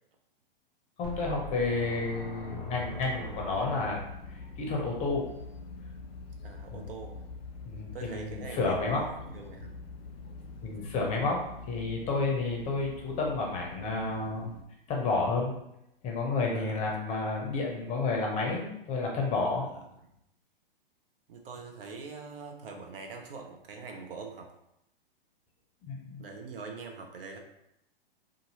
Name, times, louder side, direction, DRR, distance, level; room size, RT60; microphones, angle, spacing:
voice 1, 1.0-4.0 4.6-5.3 6.7-6.8 7.7-9.0 10.6-14.5 14.9-15.5 16.0-19.7 25.8-26.2, left 3 dB, 25° left, 0 dB, 0.6 m, -30 dB
sound 1, 1.0-4.3, left 2 dB, ahead, 0.9 m, -42 dB
sound 2, 2.7-14.6, left 3 dB, 80° left, 0.5 m, -45 dB
voice 2, 6.4-7.2 7.9-9.8 12.6-12.7 16.5-16.8 19.6-19.8 21.3-24.5 26.2-27.4, right 4 dB, 70° right, 3 dB, 0.6 m, -43 dB
2.6 x 2.5 x 2.8 m, 0.81 s
hypercardioid pair, 115°, 29 cm